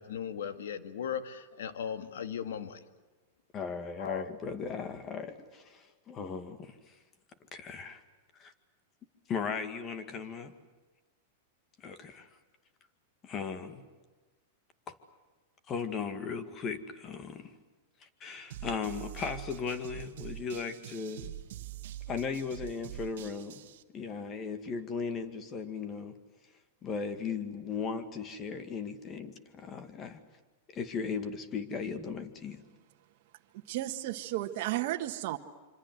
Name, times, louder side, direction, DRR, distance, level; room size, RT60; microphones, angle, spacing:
voice 1, 0.0-2.8 4.0-4.3, left 8 dB, 85° left, 2.0 m, -37 dB
voice 2, 3.5-6.7 7.5-8.0 8.4-8.5 9.3-10.5 11.8-12.3 13.2-13.8 14.9-15.0 15.7-17.5 18.0-21.3 22.1-23.6 23.9-26.2 26.8-30.2 30.7-32.6, left 5 dB, 25° left, 2.1 m, -37 dB
sound 1, 18.5-23.8, right 13 dB, 70° right, 1.5 m, -45 dB
voice 3, 33.6-35.4, right 15 dB, 55° right, 1.6 m, -33 dB
26.5 x 25.5 x 8.0 m
supercardioid pair, 145°, 0 cm